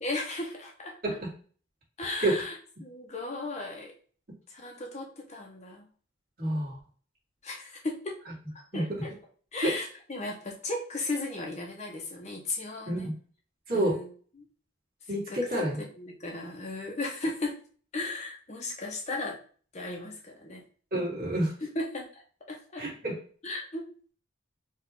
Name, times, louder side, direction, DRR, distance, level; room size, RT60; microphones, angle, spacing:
voice 1, 0.0-1.2 2.0-3.9 4.5-5.9 7.4-8.2 8.5-9.1 9.5-13.1 13.7-14.1 14.4-14.5 15.3-17.6 17.9-19.4 19.7-20.6 21.6-22.2 22.5-22.8 23.4-23.9, left 2 dB, 35° left, 1 dB, 0.7 m, -36 dB
voice 2, 6.4-6.8 8.7-8.8 9.6-9.7 12.9-13.1 13.7-14.0 15.1-15.8 20.9-21.5 22.8-23.2, right 1 dB, 45° right, -5 dB, 2.0 m, -28 dB
4.6 x 2.4 x 3.6 m, 0.42 s
head